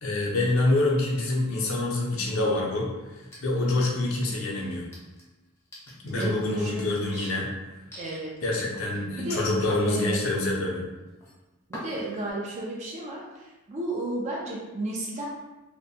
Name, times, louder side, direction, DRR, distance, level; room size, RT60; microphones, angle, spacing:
voice 1, 0.0-2.9 3.4-4.9 6.0-7.5 8.4-10.8, left 2 dB, 65° left, -3 dB, 0.6 m, -26 dB
sound 1, 3.2-4.1 4.6-7.2 7.9-8.2 8.7-10.5 10.9-11.3 11.7-12.3, equal, 10° left, 0.6 m, -45 dB
voice 2, 6.0-7.4 8.0-8.6 9.2-9.5 9.8-10.2 11.7-15.3, right 2 dB, 30° right, -3 dB, 0.4 m, -33 dB
2.6 x 2.1 x 2.6 m, 1.1 s
head